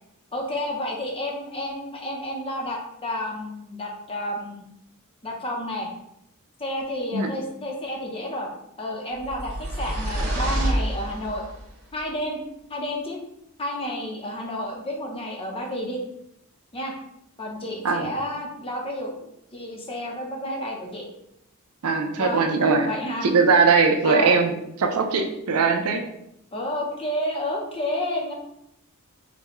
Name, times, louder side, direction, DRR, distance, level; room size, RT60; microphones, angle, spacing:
voice 1, 0.3-4.6 5.2-5.9 6.6-8.5 8.8-11.4 11.9-12.4 12.7-13.2 13.6-16.0 16.7-16.9 17.4-19.1 19.5-21.1 22.2-22.4 22.8-23.3 24.0-24.3 26.5-28.3, left 1 dB, 25° left, 0 dB, 0.7 m, -30 dB
sound 1, 9.2-11.6, right 1 dB, 85° right, 1.4 m, -27 dB
voice 2, 21.8-22.9 23.2-26.0, right 4 dB, 70° right, 5 dB, 0.5 m, -20 dB
4.9 x 2.2 x 3.0 m, 0.80 s
head